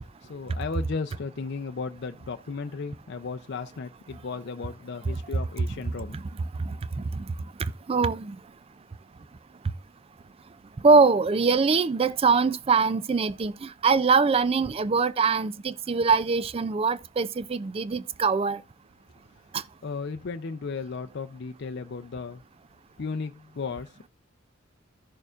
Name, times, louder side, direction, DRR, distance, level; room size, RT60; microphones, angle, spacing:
voice 1, 0.2-6.2 19.8-22.4 23.0-24.1, left 4 dB, 55° left, 0.5 m, -35 dB
voice 2, 7.9-8.4 10.8-18.6, right 4 dB, 30° right, 0.3 m, -23 dB
14.5 x 6.6 x 2.4 m
head